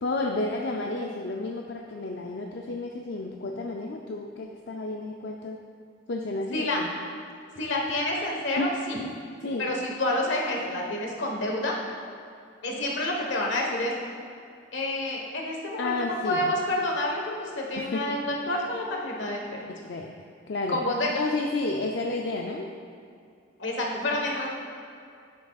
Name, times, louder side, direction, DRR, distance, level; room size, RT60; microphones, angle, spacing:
voice 1, 0.0-5.6 6.1-6.9 8.6-9.1 9.4-9.7 15.8-16.5 17.8-18.2 19.7-20.1 20.5-20.8 21.1-22.7, left 2 dB, 65° left, 1 dB, 0.5 m, -31 dB
voice 2, 7.6-9.0 9.6-11.7 12.6-13.9 14.7-19.6 20.7-21.1 23.6-24.5, left 1 dB, 80° left, -1 dB, 1.3 m, -28 dB
11.5 x 7.0 x 2.4 m, 2.4 s
head